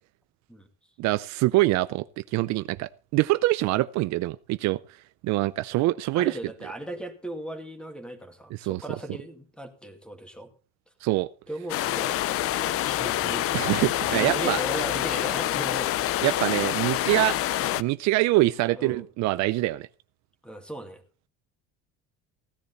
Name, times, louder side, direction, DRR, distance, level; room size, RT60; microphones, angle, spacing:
voice 1, 1.0-4.8 5.2-6.4 8.5-8.8 11.0-11.3 13.5-14.6 16.2-17.4 17.8-19.9, right 18 dB, 65° right, 0.6 m, -24 dB
voice 2, 6.1-10.5 11.5-13.7 14.0-16.2 18.7-19.0 20.4-21.0, right 1 dB, 5° left, 2.3 m, -38 dB
sound 1, 11.7-17.8, left 13 dB, 50° left, 0.6 m, -27 dB
16.0 x 10.5 x 4.2 m
cardioid pair, 115°, 30 cm